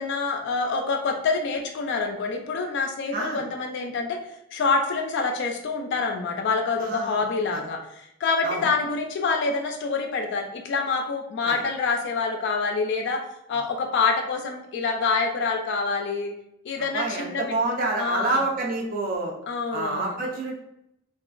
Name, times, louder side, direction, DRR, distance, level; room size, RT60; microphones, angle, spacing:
voice 1, 0.0-4.2 4.5-7.8 8.2-13.2 13.5-16.3 16.6-17.4 18.0-18.4 19.5-20.2, left 4 dB, 55° left, 3 dB, 0.3 m, -26 dB
voice 2, 3.1-3.4 6.8-7.2 7.5-7.6 8.4-8.7 11.4-11.6 13.5-13.6 16.9-19.3 19.7-20.5, right 2 dB, 45° right, -1 dB, 0.4 m, -28 dB
2.9 x 2.3 x 2.4 m, 0.81 s
head